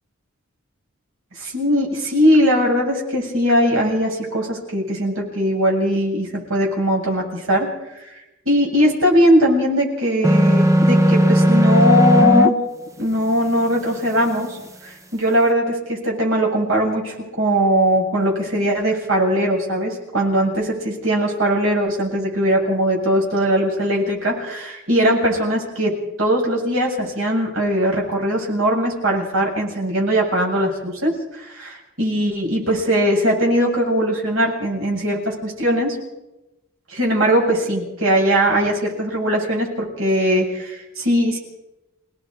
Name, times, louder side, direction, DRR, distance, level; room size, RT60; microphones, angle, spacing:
voice 1, 1.4-7.7 8.0-8.1 8.5-12.6 13.0-14.6 14.8-35.9 36.9-41.4, equal, 90° right, -1 dB, 7.7 m, -20 dB
sound 1, 10.2-12.5, equal, 15° right, 0.9 m, -15 dB
29.0 x 18.5 x 5.0 m, 0.97 s
head